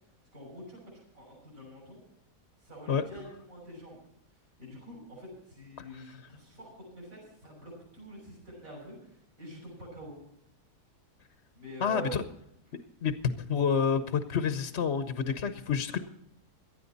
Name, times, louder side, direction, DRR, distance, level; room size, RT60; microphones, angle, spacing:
voice 1, 0.3-2.0 2.6-4.0 4.6-10.2 11.5-12.2, right 1 dB, 60° right, -3 dB, 7.0 m, -46 dB
voice 2, 11.8-12.2 13.0-13.1 13.5-16.0, left 6 dB, 50° left, 9 dB, 1.1 m, -28 dB
18.5 x 12.5 x 4.1 m, 0.75 s
omnidirectional pair, 1.7 m